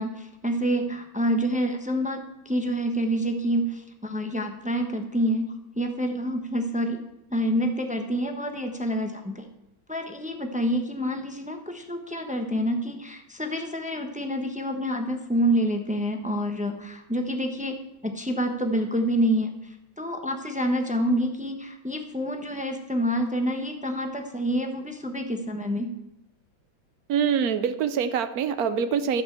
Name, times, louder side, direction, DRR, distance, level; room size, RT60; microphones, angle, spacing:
voice 1, 0.0-7.0 7.3-9.5 9.9-17.8 18.0-19.6 20.0-25.9, equal, 10° right, 5 dB, 0.5 m, -27 dB
voice 2, 27.1-29.2, right 7 dB, 60° right, 11 dB, 1.0 m, -25 dB
13.5 x 5.9 x 7.5 m, 0.90 s
omnidirectional pair, 2.2 m